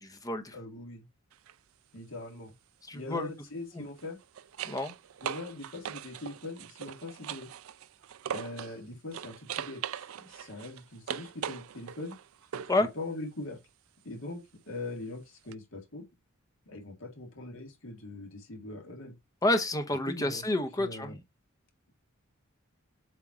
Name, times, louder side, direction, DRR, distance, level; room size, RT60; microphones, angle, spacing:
voice 1, 0.0-0.6 2.9-3.3 4.6-4.9 12.7-12.9 19.4-21.1, left 2 dB, 15° left, 0.8 m, -29 dB
voice 2, 0.5-1.1 1.9-2.5 2.9-4.2 5.2-7.5 8.2-12.1 12.8-13.6 14.0-14.4 14.7-16.1 16.7-19.1 20.1-20.4 20.8-21.1, left 2 dB, 70° left, 2.1 m, -41 dB
sound 1, 1.3-1.5 3.8-8.8 9.1-12.9 15.5-15.6, right 8 dB, 90° right, 0.4 m, -40 dB
7.5 x 3.0 x 4.8 m
head